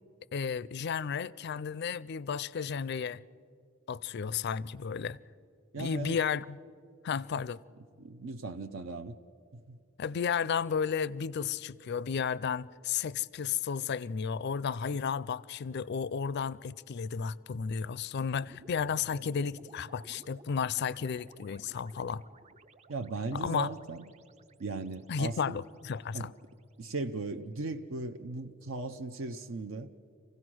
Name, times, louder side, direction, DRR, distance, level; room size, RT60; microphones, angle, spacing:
voice 1, 0.3-3.2 3.9-5.2 5.8-6.6 7.0-7.6 10.0-22.2 23.3-23.7 25.1-26.3, left 6 dB, 55° left, 0.4 m, -33 dB
voice 2, 5.7-6.2 8.0-9.2 9.5-9.8 22.9-24.1 24.6-25.6 26.1-26.3 26.8-29.9, right 3 dB, 70° right, 0.6 m, -37 dB
sound 1, 18.4-26.7, right 2 dB, 35° right, 0.6 m, -57 dB
26.0 x 16.0 x 6.2 m
head